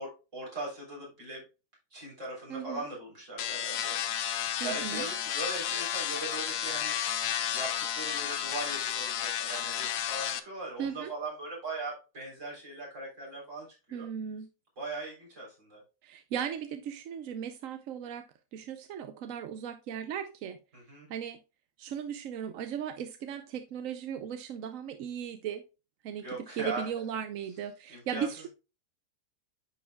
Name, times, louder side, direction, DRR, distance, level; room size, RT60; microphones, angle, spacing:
voice 1, 0.0-1.4 1.9-4.0 4.3-6.9 7.5-14.1 14.8-15.8 20.7-21.1 26.2-26.9 27.9-28.5, right 2 dB, 45° right, 4.1 m, -40 dB
voice 2, 2.5-2.9 4.6-5.1 10.8-11.1 13.9-14.5 16.0-20.6 21.1-21.4 21.8-25.6 26.0-28.5, right 8 dB, 65° right, 0.9 m, -37 dB
sound 1, 3.4-10.4, left 10 dB, 70° left, 1.2 m, -32 dB
10.0 x 5.0 x 2.3 m
omnidirectional pair, 1.8 m